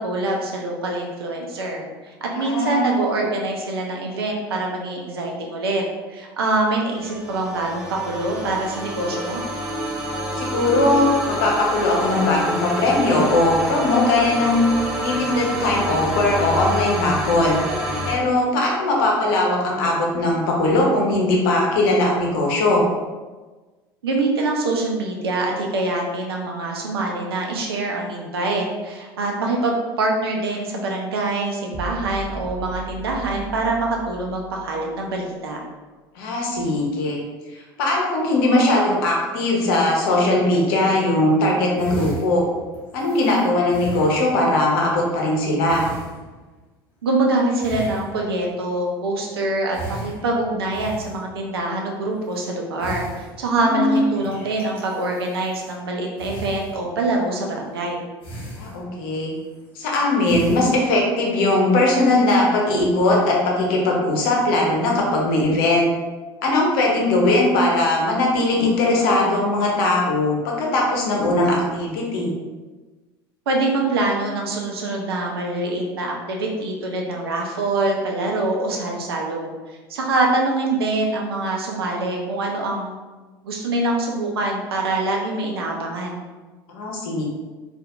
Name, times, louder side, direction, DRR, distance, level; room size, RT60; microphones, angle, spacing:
voice 1, 0.0-5.8 6.1-9.4 24.0-35.6 47.0-58.0 73.5-83.0 83.4-86.2, right 2 dB, 80° right, 0 dB, 0.6 m, -24 dB
voice 2, 2.3-2.9 10.4-14.7 15.0-17.6 18.1-22.8 36.2-37.2 37.8-42.5 42.9-45.8 53.5-54.1 58.6-59.3 59.7-65.9 66.4-72.3 86.7-87.2, left 2 dB, 65° left, -1 dB, 0.9 m, -20 dB
sound 1, 6.9-18.1, equal, 5° right, 0.8 m, -28 dB
sound 2, 31.7-35.2, right 4 dB, 40° right, 0.6 m, -36 dB
sound 3, 41.8-44.6 45.7-46.6 47.6-48.5 49.7-51.4 52.2-52.4 52.8-53.7 54.0-55.8 56.2-57.1 57.6-57.9 58.2-59.1 59.4-59.9 60.2-61.1, right 1 dB, 40° left, 1.4 m, -37 dB
4.1 x 2.5 x 2.5 m, 1.3 s
figure-of-eight pair, 70°, 13 cm